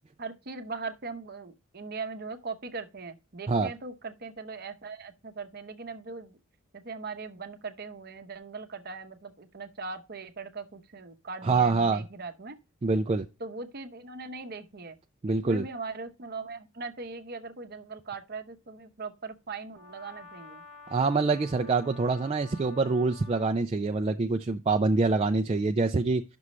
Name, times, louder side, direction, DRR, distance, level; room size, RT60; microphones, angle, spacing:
voice 1, 0.2-6.4 6.7-12.6 13.4-15.0 15.3-20.6, right 4 dB, 45° right, 0.8 m, -40 dB
voice 2, 11.4-12.0 12.8-13.3 15.2-15.7 20.9-26.2, right 3 dB, 25° right, 0.3 m, -25 dB
Brass instrument, 19.7-23.6, left 3 dB, 25° left, 1.0 m, -50 dB
9.5 x 6.2 x 3.1 m
head